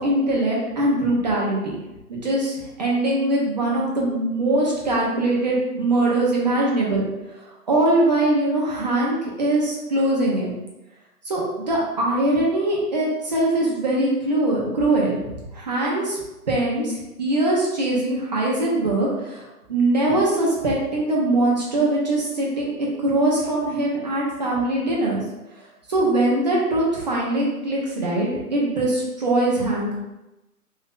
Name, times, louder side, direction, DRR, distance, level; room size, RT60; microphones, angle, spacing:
voice 1, 0.0-1.8 2.1-7.1 7.4-10.5 11.2-15.2 15.5-16.2 16.5-25.2 25.9-30.0, right 1 dB, 30° right, -4 dB, 0.6 m, -22 dB
3.1 x 2.7 x 3.5 m, 0.98 s
figure-of-eight pair, 140°, 46 cm